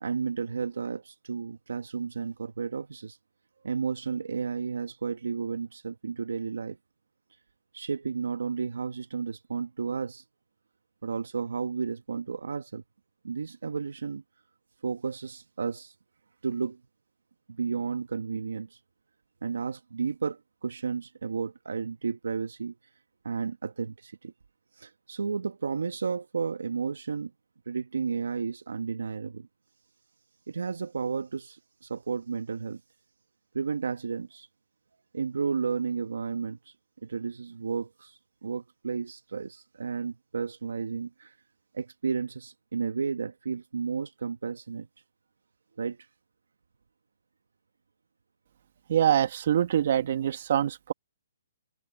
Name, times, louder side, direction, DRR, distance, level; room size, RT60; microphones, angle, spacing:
voice 1, 0.0-3.2 3.6-6.8 7.7-10.2 11.0-12.8 13.2-14.2 14.8-15.9 16.4-16.8 17.5-18.8 19.4-22.7 23.2-24.3 24.8-27.3 27.7-29.5 30.5-32.8 33.5-34.5 35.1-36.7 37.0-41.3 41.7-44.9 45.8-46.0, right 5 dB, 90° right, 1.2 m, -32 dB
voice 2, 48.9-50.9, right 10 dB, 55° right, 1.9 m, -24 dB
hypercardioid pair, 155°, 0 cm